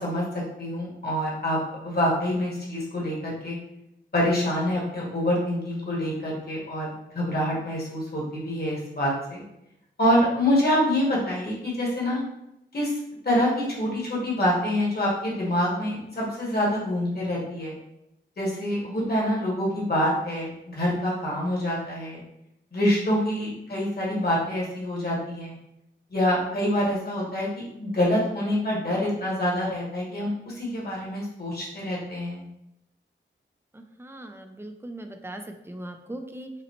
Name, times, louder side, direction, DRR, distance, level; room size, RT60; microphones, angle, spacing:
voice 1, 0.0-3.6 4.1-9.4 10.0-12.2 12.7-12.9 13.2-17.7 18.4-22.2 22.7-25.6 26.1-32.4, left 1 dB, 50° left, -4 dB, 1.4 m, -26 dB
voice 2, 33.7-36.5, right 1 dB, 10° right, 5 dB, 0.4 m, -39 dB
5.0 x 2.1 x 3.0 m, 0.84 s
wide cardioid pair, 85°, 20 cm